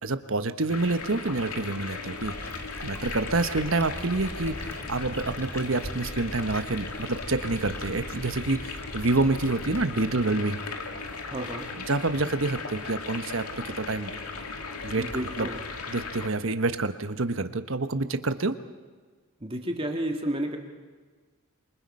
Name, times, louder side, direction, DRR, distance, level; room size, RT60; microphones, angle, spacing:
voice 1, 0.0-2.3 2.8-10.6 11.9-14.1 14.8-15.1 15.4-15.5 15.9-18.6, right 2 dB, 65° right, 10 dB, 1.2 m, -27 dB
sound 1, 0.7-16.3, left 4 dB, 85° left, 2.2 m, -37 dB
sound 2, 2.2-9.9, left 1 dB, 10° left, 1.1 m, -41 dB
voice 2, 11.3-11.7 15.0-15.6 19.4-20.6, right 1 dB, 25° right, 3 dB, 1.9 m, -31 dB
27.0 x 24.5 x 5.5 m, 1.4 s
head